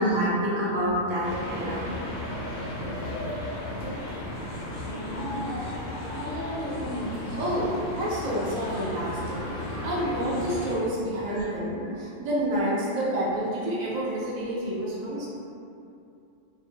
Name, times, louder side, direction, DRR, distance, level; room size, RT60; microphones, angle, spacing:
voice 1, 0.0-1.9 7.2-7.4 11.3-11.5, equal, 45° right, -9 dB, 0.8 m, -27 dB
sound 1, 1.2-10.8, left 1 dB, 90° left, 1.0 m, -33 dB
voice 2, 7.4-9.4 9.8-15.3, equal, 80° right, -7 dB, 0.3 m, -29 dB
2.5 x 2.1 x 2.6 m, 2.6 s
omnidirectional pair, 1.3 m